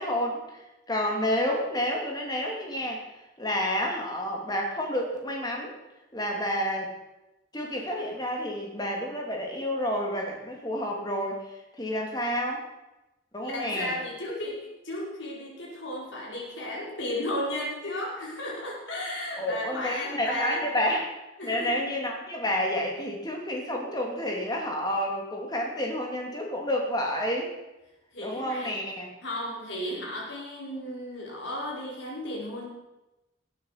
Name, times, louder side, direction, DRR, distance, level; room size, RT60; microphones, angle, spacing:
voice 1, 0.0-3.0 3.4-5.7 6.1-6.9 7.5-11.4 11.8-12.6 13.3-14.0 19.4-21.0 21.4-27.5 28.2-29.1, equal, 20° left, 0 dB, 2.9 m, -29 dB
voice 2, 13.4-20.7 21.4-21.8 28.1-28.7 29.2-32.7, left 1 dB, 70° left, -3 dB, 5.4 m, -34 dB
18.0 x 9.4 x 6.0 m, 0.98 s
head